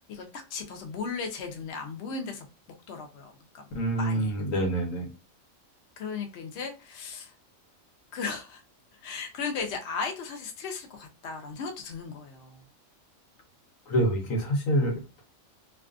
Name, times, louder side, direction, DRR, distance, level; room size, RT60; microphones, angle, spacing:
voice 1, 0.1-2.5 2.9-3.6 4.0-4.3 6.0-7.3 8.1-8.6 8.9-12.6, left 5 dB, 65° left, 3 dB, 0.9 m, -36 dB
voice 2, 3.7-5.1 13.9-15.2, right 1 dB, 90° left, 2 dB, 1.2 m, -27 dB
2.6 x 2.4 x 2.4 m, 0.29 s
omnidirectional pair, 1.4 m